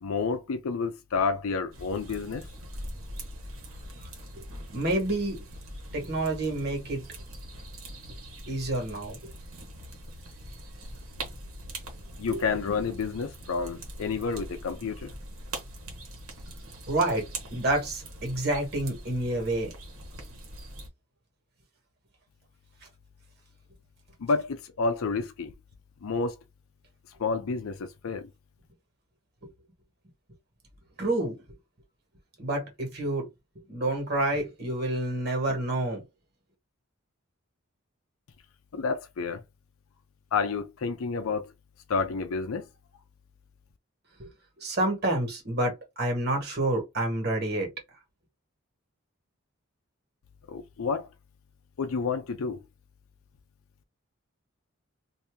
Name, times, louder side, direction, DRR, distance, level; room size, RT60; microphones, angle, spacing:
voice 1, 0.0-2.5 12.2-15.1 24.2-25.5 26.0-26.4 27.2-28.3 38.7-39.4 40.3-41.5 41.9-42.7 50.5-51.1 51.8-52.6, left 4 dB, 80° left, 0.5 m, -29 dB
sound 1, 1.7-20.9, right 1 dB, 85° right, 1.2 m, -42 dB
voice 2, 4.7-5.4 5.9-7.1 8.5-9.3 12.3-12.4 16.9-17.2 17.5-19.7 31.0-31.4 32.4-33.3 33.7-36.0 44.2-44.3 44.6-47.7, right 1 dB, 50° right, 1.4 m, -28 dB
2.8 x 2.6 x 3.5 m
head